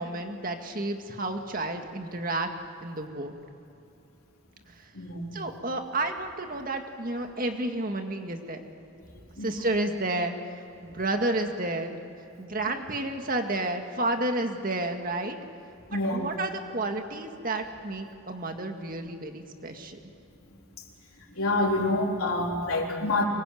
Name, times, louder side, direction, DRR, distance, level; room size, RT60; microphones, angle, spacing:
voice 1, 0.0-2.5 2.8-3.3 4.8-4.9 5.3-8.6 9.4-10.4 10.8-12.0 12.4-15.4 16.1-20.0, right 2 dB, 40° right, 5 dB, 2.0 m, -31 dB
voice 2, 4.9-5.3 9.4-9.5 15.9-16.3 21.3-23.3, left 2 dB, 90° left, 0 dB, 4.0 m, -27 dB
25.0 x 22.0 x 9.3 m, 2.8 s
head